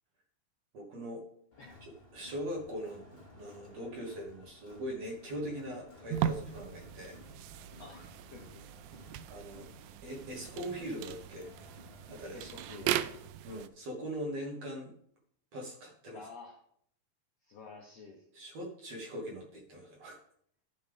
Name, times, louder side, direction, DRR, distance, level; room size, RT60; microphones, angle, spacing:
voice 1, 0.7-1.2 1.8-7.2 9.3-9.6 10.0-11.5 12.1-12.5 13.4-14.9 15.5-16.2 18.3-20.2, equal, 55° right, -1 dB, 2.0 m, -41 dB
Crowd, 1.5-13.3, left 2 dB, 10° left, 3.2 m, -56 dB
sound 1, 6.1-13.7, right 11 dB, 90° right, 1.9 m, -38 dB
voice 2, 7.8-8.6 12.3-13.2 16.1-16.6 17.4-18.2, left 4 dB, 70° left, 1 dB, 1.6 m, -50 dB
13.0 x 6.5 x 3.5 m, 0.66 s
omnidirectional pair, 4.4 m